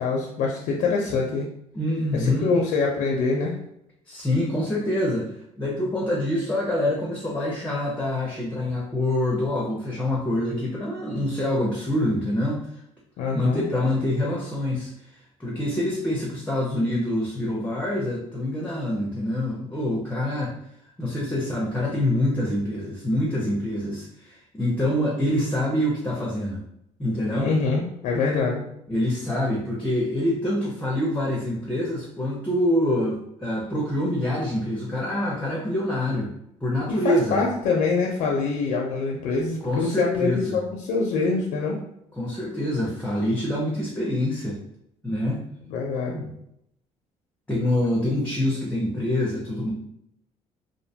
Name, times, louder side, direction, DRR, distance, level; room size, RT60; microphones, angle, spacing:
voice 1, 0.0-1.5 2.1-3.5 13.2-13.6 27.4-28.6 36.9-41.8 45.7-46.1, left 4 dB, 80° left, 0 dB, 0.4 m, -24 dB
voice 2, 1.7-2.5 4.1-5.2 5.6-12.7 13.3-14.9 15.4-20.5 21.0-26.6 27.0-27.5 28.9-36.3 36.6-37.4 39.6-40.6 42.1-44.6 45.0-45.4 46.1-46.3 47.5-49.7, left 1 dB, 10° left, -3 dB, 0.5 m, -25 dB
2.6 x 2.1 x 2.7 m, 0.77 s
cardioid pair, 125°, 13 cm